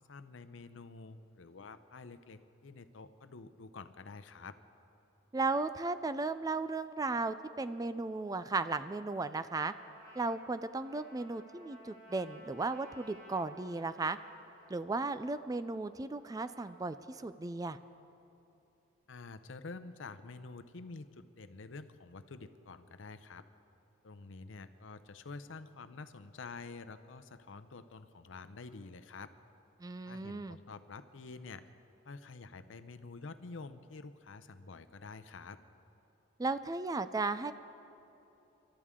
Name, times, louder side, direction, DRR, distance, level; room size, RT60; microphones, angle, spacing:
voice 1, 0.0-4.6 19.1-23.4 24.0-29.3 30.0-31.6 32.0-35.6, left 3 dB, 75° left, 11 dB, 0.7 m, -48 dB
voice 2, 5.3-9.7 10.2-14.2 14.7-17.8 29.8-30.6 36.4-37.5, right 3 dB, 20° right, 12 dB, 0.3 m, -35 dB
Trumpet, 9.3-17.4, right 1 dB, 40° right, 2.6 m, -59 dB
29.0 x 12.5 x 3.7 m, 2.9 s
head